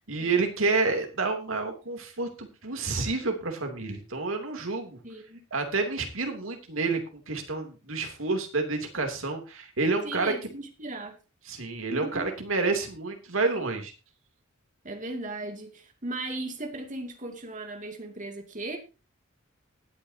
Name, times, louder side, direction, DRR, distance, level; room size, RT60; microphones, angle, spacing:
voice 1, 0.1-5.0 5.5-10.6 11.5-13.9, right 3 dB, 70° right, 4 dB, 3.0 m, -29 dB
voice 2, 5.0-5.4 10.0-11.2 11.9-12.3 14.8-18.8, right 2 dB, 35° right, 4 dB, 2.5 m, -37 dB
19.5 x 8.8 x 2.9 m, 0.30 s
head